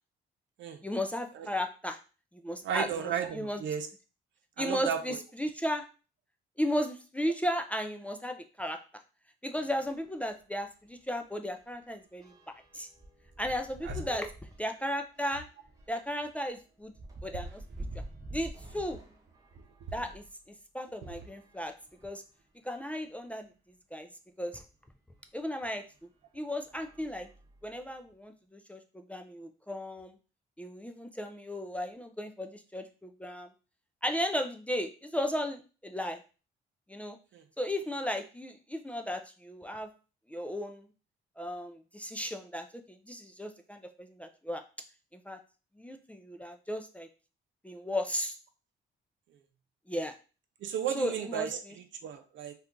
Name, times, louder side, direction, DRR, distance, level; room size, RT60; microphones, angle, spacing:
voice 1, 0.8-2.0 2.3-3.6 4.6-5.8 6.6-8.8 9.4-12.3 12.7-12.9 13.4-14.3 14.6-15.5 15.9-16.9 17.2-17.6 18.3-19.0 19.9-20.2 20.7-21.7 22.0-22.2 22.6-23.5 23.9-24.1 24.4-24.6 25.3-25.8 26.3-27.3 27.6-30.1 30.6-33.5 34.0-36.2 36.9-37.2 37.6-39.9 40.3-40.9 41.4-44.6 45.1-45.4 45.8-47.1 47.6-48.4 49.9-50.1 51.0-51.7, equal, 5° left, 5 dB, 0.4 m, -35 dB
voice 2, 2.6-3.9 4.6-5.2 13.8-14.2 21.0-21.2 37.3-37.4 50.6-52.5, right 8 dB, 70° right, 7 dB, 0.6 m, -34 dB
sound 1, 9.8-10.0 10.4-10.5 10.8-20.3 21.0-22.4 23.1-23.2 23.4-23.5 25.2-25.3 25.9-26.2 26.6-27.9, right 1 dB, 20° right, 0.9 m, -48 dB
2.7 x 2.4 x 3.6 m, 0.34 s
cardioid pair, 90°, 20 cm